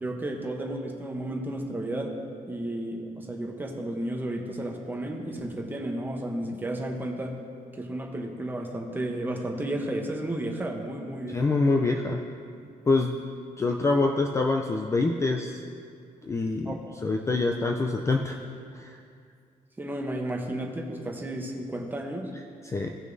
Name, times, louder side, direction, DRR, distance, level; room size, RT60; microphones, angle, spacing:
voice 1, 0.0-2.1 2.5-7.4 7.7-11.4 16.6-16.9 19.8-22.3, right 1 dB, 15° right, 1 dB, 0.9 m, -33 dB
voice 2, 11.3-12.2 12.9-13.2 13.6-15.6 16.2-18.4 18.7-19.0 22.6-22.9, left 3 dB, 20° left, 2 dB, 0.4 m, -25 dB
17.0 x 6.2 x 2.6 m, 2.3 s
cardioid pair, 160°, 15 cm